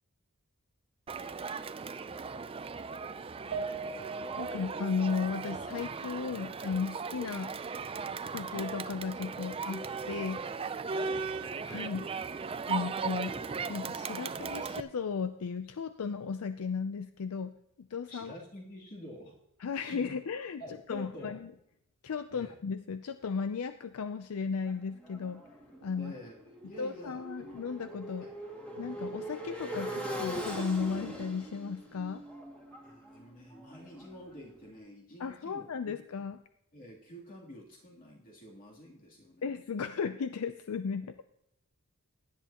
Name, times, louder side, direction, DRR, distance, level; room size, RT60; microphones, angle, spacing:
Crowd, 1.1-14.8, right 5 dB, 25° right, 0.4 m, -37 dB
Piano, 3.5-8.0 8.4-8.5 8.9-9.0, right 3 dB, 55° right, 1.9 m, -43 dB
voice 1, 4.4-7.5 8.3-10.4 11.7-12.1 12.7-13.4 13.7-18.3 19.6-20.6 20.9-21.5 22.0-25.4 25.8-26.1 26.8-28.3 28.8-32.2 35.2-36.4 39.4-41.1, left 5 dB, 75° left, 10 dB, 0.5 m, -35 dB
voice 2, 10.9-11.3 18.1-19.4 19.8-20.1 20.6-21.4 22.3-22.6 26.0-26.4 26.6-27.6 28.2-28.3 32.8-36.0 36.7-39.5 41.0-41.1, equal, 40° left, -3 dB, 3.0 m, -48 dB
Motorcycle, 24.7-34.5, equal, 5° left, 2.2 m, -42 dB
17.0 x 10.5 x 2.9 m, 0.77 s
head